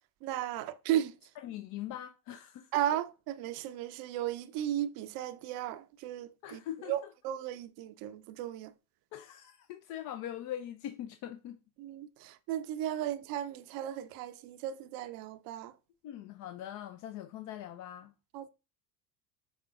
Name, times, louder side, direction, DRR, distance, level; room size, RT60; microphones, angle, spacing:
voice 1, 0.2-1.1 2.7-8.7 11.8-15.7 18.3-18.5, right 12 dB, 50° right, 0.6 m, -35 dB
voice 2, 1.4-2.7 6.4-7.0 9.1-11.6 16.0-18.1, left 11 dB, 40° left, 0.5 m, -42 dB
5.4 x 3.6 x 2.4 m
hypercardioid pair, 75°, 46 cm